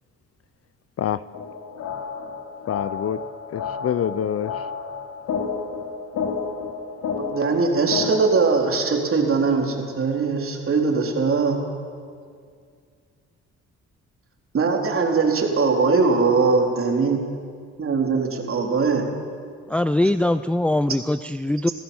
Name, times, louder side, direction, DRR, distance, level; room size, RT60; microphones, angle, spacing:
sound 1, 1.3-8.3, left 5 dB, 75° left, 3.6 m, -31 dB
voice 1, 2.7-3.2 3.5-4.7 5.2-5.3, left 9 dB, 50° left, 16 dB, 0.7 m, -26 dB
voice 2, 7.2-11.6 14.5-17.2 17.8-19.0, right 4 dB, 45° right, 2 dB, 3.9 m, -21 dB
voice 3, 19.7-21.7, left 1 dB, 5° left, 11 dB, 0.5 m, -22 dB
27.5 x 16.0 x 7.2 m, 2.1 s
cardioid pair, 90°, 30 cm